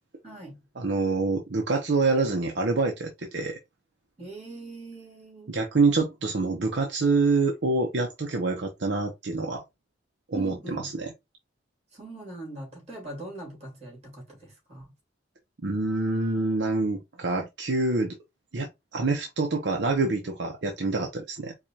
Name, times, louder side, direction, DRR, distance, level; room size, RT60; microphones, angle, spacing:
voice 1, 0.2-0.6 4.2-5.6 10.3-10.9 11.9-14.9, right 2 dB, 35° right, 2.3 m, -41 dB
voice 2, 0.8-3.6 5.5-9.6 10.3-11.1 15.6-18.2 18.5-21.5, right 3 dB, 70° right, 0.7 m, -26 dB
4.7 x 2.4 x 2.8 m
head